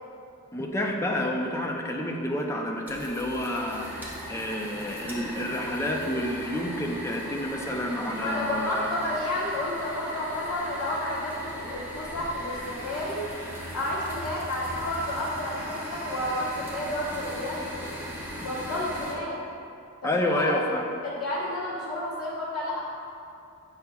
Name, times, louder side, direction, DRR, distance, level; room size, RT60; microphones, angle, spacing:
voice 1, 0.5-8.9 20.0-20.8, left 1 dB, 10° left, 0 dB, 0.5 m, -29 dB
sound 1, 2.9-19.1, equal, 10° right, 0.9 m, -38 dB
voice 2, 8.2-13.2 13.7-17.9 18.4-19.4 20.0-20.5 21.0-22.8, left 1 dB, 80° left, -10 dB, 1.1 m, -31 dB
8.1 x 5.6 x 2.3 m, 2.6 s
head